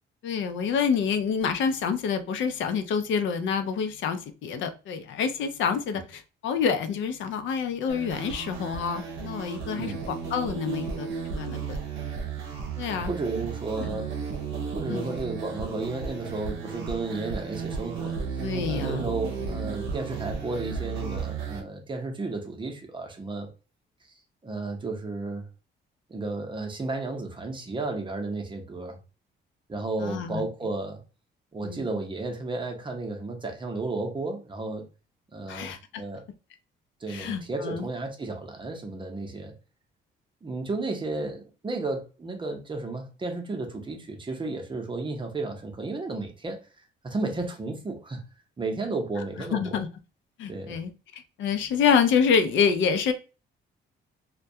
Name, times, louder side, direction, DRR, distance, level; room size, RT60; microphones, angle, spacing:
voice 1, 0.2-11.8 12.8-13.1 13.8-14.0 14.9-15.1 18.4-19.1 19.4-19.5 30.0-30.4 31.6-31.8 35.5-36.0 37.1-37.9 49.5-49.9 50.4-53.1, left 6 dB, 75° left, 0.5 m, -27 dB
sound 1, 7.9-21.6, right 5 dB, 80° right, 0.7 m, -34 dB
voice 2, 9.8-10.1 12.9-14.1 14.7-23.5 24.1-24.2 24.4-25.5 26.1-29.0 29.7-31.0 31.5-34.9 35.3-36.2 37.0-39.5 40.4-46.7 47.0-48.2 48.6-49.8 50.5-50.8, right 3 dB, 25° right, 0.7 m, -33 dB
2.2 x 2.2 x 2.6 m
cardioid pair, 90°, 20 cm